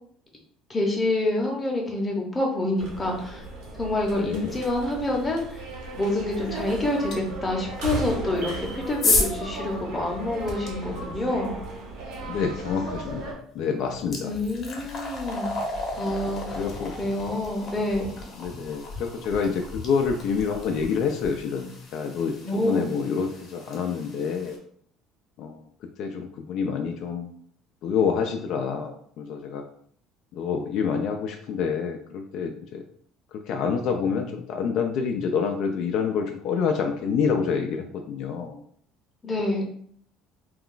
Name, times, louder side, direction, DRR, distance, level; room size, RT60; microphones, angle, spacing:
voice 1, 0.7-3.4 3.8-5.7 5.9-11.5 14.2-15.5 15.9-16.6 17.0-18.1 22.4-22.9 39.2-39.6, left 1 dB, 15° left, 0 dB, 0.7 m, -27 dB
sound 1, 2.8-13.3, right 2 dB, 70° right, 0.9 m, -36 dB
voice 2, 4.2-4.5 12.3-14.3 16.1-16.2 16.5-16.9 18.4-24.6 25.4-25.6 26.0-27.3 27.8-29.6 30.3-32.8 33.3-38.6, left 6 dB, 60° left, 4 dB, 0.3 m, -27 dB
sound 2, 7.1-7.2 8.3-10.7 13.0-13.1 13.6-24.6, left 3 dB, 45° left, 0.8 m, -33 dB
2.3 x 2.2 x 3.7 m, 0.62 s
cardioid pair, 135°, 0 cm